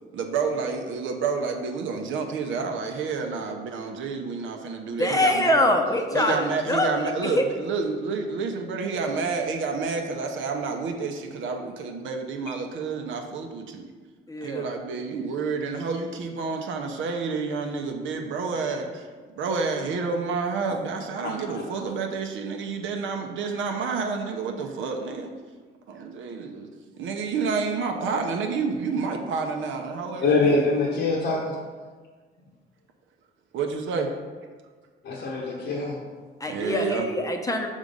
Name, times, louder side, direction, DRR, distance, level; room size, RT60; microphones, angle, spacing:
voice 1, 0.1-5.6 6.1-13.8 14.4-19.1 19.4-25.3 25.9-26.7 27.0-30.6 33.5-34.1 36.5-37.0, right 4 dB, 75° right, 3 dB, 0.7 m, -29 dB
voice 2, 4.9-6.9 7.2-7.4 14.3-14.7 36.4-37.7, left 1 dB, 15° left, 3 dB, 0.6 m, -24 dB
voice 3, 30.2-31.6 35.1-36.0 36.4-36.8, left 3 dB, 65° left, -3 dB, 0.9 m, -24 dB
5.1 x 3.7 x 5.2 m, 1.5 s
cardioid pair, 90°, 20 cm